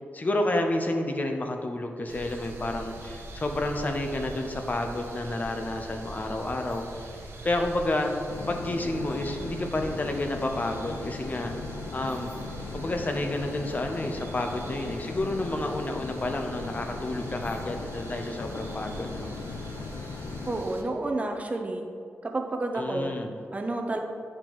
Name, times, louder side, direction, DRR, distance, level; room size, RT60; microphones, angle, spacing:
voice 1, 0.1-7.2 7.4-8.1 8.5-11.5 11.9-12.3 12.7-19.3 22.8-23.4, left 1 dB, 35° left, 4 dB, 0.6 m, -30 dB
sound 1, 2.1-20.8, right 2 dB, 65° right, 0.8 m, -42 dB
sound 2, 8.3-20.6, left 5 dB, 80° left, 0.3 m, -39 dB
voice 2, 20.5-21.9 22.2-23.2 23.5-24.0, right 2 dB, 30° right, 3 dB, 0.6 m, -30 dB
8.7 x 4.4 x 3.0 m, 2.4 s
cardioid pair, 85°, 5 cm